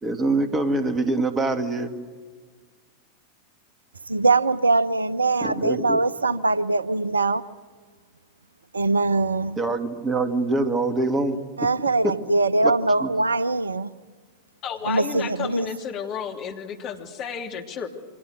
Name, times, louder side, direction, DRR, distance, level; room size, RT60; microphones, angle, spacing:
voice 1, 0.0-1.9 5.4-6.0 9.6-11.7 12.0-12.2 12.6-12.7 13.0-13.1, right 2 dB, 20° right, 8 dB, 2.1 m, -24 dB
voice 2, 4.1-7.4 8.7-9.5 11.6-13.9 14.9-15.7, right 3 dB, 75° right, 19 dB, 0.7 m, -22 dB
voice 3, 14.6-17.9, left 7 dB, 35° left, 3 dB, 2.9 m, -32 dB
28.5 x 25.5 x 6.6 m, 1.5 s
figure-of-eight pair, 90°, 0 cm